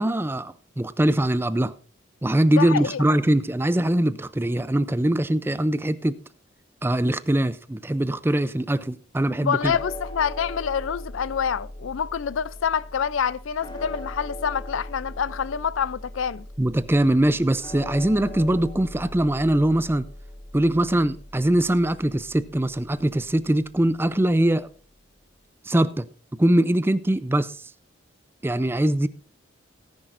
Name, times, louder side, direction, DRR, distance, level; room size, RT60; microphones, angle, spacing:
voice 1, 0.0-1.7 2.2-6.2 6.8-9.7 16.6-20.0 20.5-24.7 25.6-26.1 26.4-27.6 28.4-29.1, right 1 dB, 10° right, 0.4 m, -22 dB
voice 2, 2.5-3.0 9.4-16.5, left 7 dB, 75° left, 0.4 m, -27 dB
sound 1, 9.6-23.9, left 1 dB, 20° left, 1.4 m, -40 dB
18.0 x 10.0 x 2.5 m
head